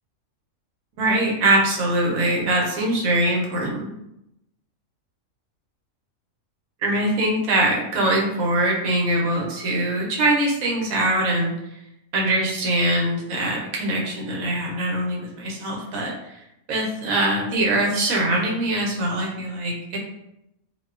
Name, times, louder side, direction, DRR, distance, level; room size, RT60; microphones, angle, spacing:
voice 1, 0.9-3.9 6.8-11.5 12.1-16.4 16.7-20.0, right 1 dB, 85° right, -2 dB, 1.1 m, -22 dB
2.6 x 2.1 x 2.3 m, 0.85 s
omnidirectional pair, 1.4 m